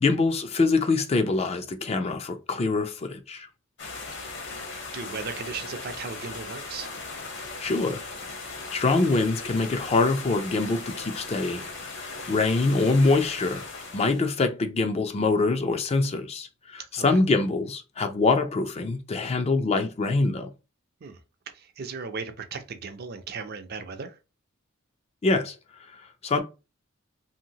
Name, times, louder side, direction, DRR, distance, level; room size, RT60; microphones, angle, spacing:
voice 1, 0.0-3.5 7.6-8.1 8.7-11.7 11.9-13.7 13.9-20.5 25.2-25.6 25.9-26.4, left 3 dB, 30° left, 0.4 m, -24 dB
sound 1, 3.8-14.3, left 3 dB, 60° left, 0.9 m, -38 dB
voice 2, 4.9-6.9 17.0-17.2 21.0-21.2 21.5-24.2, right 5 dB, 50° right, 0.4 m, -36 dB
2.8 x 2.7 x 2.7 m
head